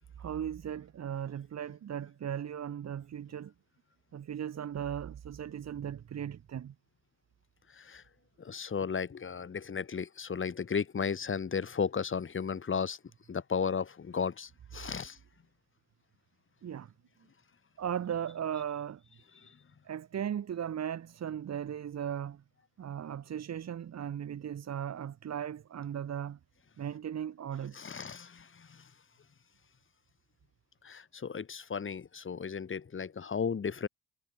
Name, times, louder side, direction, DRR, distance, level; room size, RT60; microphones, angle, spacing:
voice 1, 0.2-3.5 4.1-6.7 16.6-16.9 17.8-19.0 19.8-22.4 22.8-26.4 26.8-27.8, right 9 dB, 60° right, 4.6 m, -37 dB
voice 2, 7.7-8.0 8.4-13.0 13.3-15.2 19.4-19.6 27.7-28.9 30.8-33.9, left 6 dB, 40° left, 7.5 m, -35 dB
cardioid pair, 90°, 30 cm